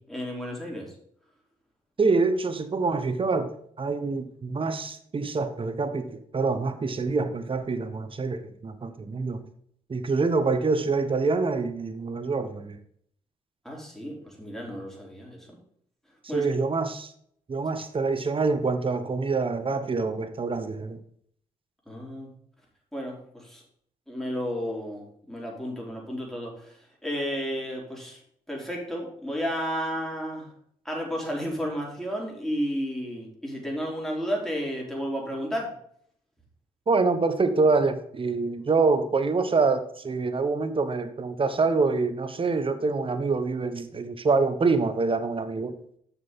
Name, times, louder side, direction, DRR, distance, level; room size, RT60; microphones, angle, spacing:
voice 1, 0.1-0.9 13.6-15.6 16.3-16.5 21.9-22.3 22.9-23.6 24.1-26.7 27.0-28.2 28.5-30.5 30.8-35.7, equal, 5° left, -2 dB, 4.4 m, -32 dB
voice 2, 2.0-3.5 3.8-9.4 9.9-12.8 16.2-17.1 17.5-21.0 36.9-45.8, right 4 dB, 35° right, 10 dB, 1.1 m, -26 dB
7.1 x 6.7 x 5.5 m, 0.65 s
hypercardioid pair, 45°, 16 cm